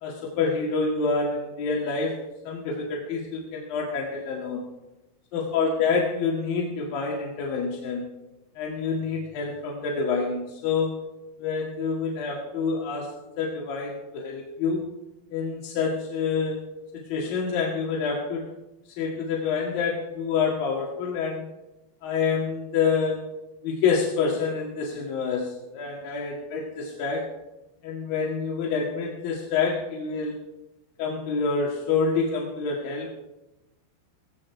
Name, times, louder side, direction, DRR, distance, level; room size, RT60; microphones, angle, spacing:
voice 1, 0.0-4.6 5.3-8.0 8.6-11.1 11.4-13.1 13.4-14.8 15.3-18.5 18.9-21.5 22.0-23.4 23.6-27.3 27.8-30.4 31.0-33.1, left 5 dB, 55° left, -2 dB, 3.1 m, -27 dB
18.0 x 16.5 x 4.7 m, 0.98 s
omnidirectional pair, 5.9 m